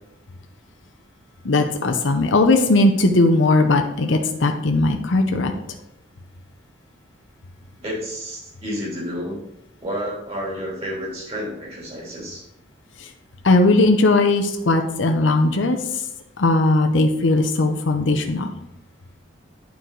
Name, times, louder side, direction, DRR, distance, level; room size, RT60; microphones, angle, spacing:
voice 1, 1.4-5.5 13.0-13.1 13.4-16.0 16.4-18.5, left 2 dB, 75° left, 4 dB, 0.7 m, -18 dB
voice 2, 7.8-9.4 9.8-12.4, equal, 30° right, -4 dB, 2.9 m, -30 dB
9.4 x 4.7 x 3.9 m, 0.82 s
head